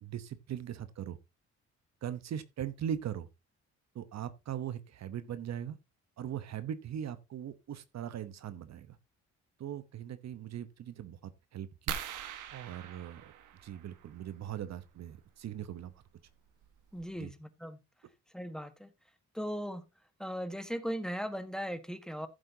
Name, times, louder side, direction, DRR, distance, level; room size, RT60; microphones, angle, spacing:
voice 1, 0.0-1.2 2.0-3.3 3.9-5.8 6.2-9.0 9.6-11.2 11.5-12.0 12.5-13.3 13.6-15.9 17.2-17.3, right 9 dB, 60° right, 1.0 m, -40 dB
sound 1, 11.9-14.2 15.9-16.0 16.6-16.7 17.0-17.2, right 8 dB, 90° right, 1.5 m, -42 dB
voice 2, 16.9-17.8 18.3-18.9 19.3-19.8 20.2-22.3, equal, ahead, 1.4 m, -38 dB
15.0 x 7.6 x 2.8 m
cardioid pair, 90°, 30 cm